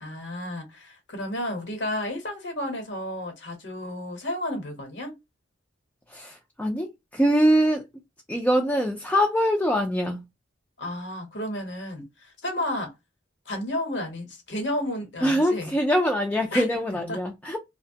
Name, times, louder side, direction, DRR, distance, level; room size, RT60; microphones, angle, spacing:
voice 1, 0.0-5.1 10.8-12.9 13.5-15.7 16.5-16.7 17.1-17.2, left 1 dB, 70° left, 1.0 m, -32 dB
voice 2, 6.1-7.8 8.3-10.2 15.2-17.6, equal, 10° left, 0.4 m, -23 dB
2.7 x 2.1 x 2.7 m
head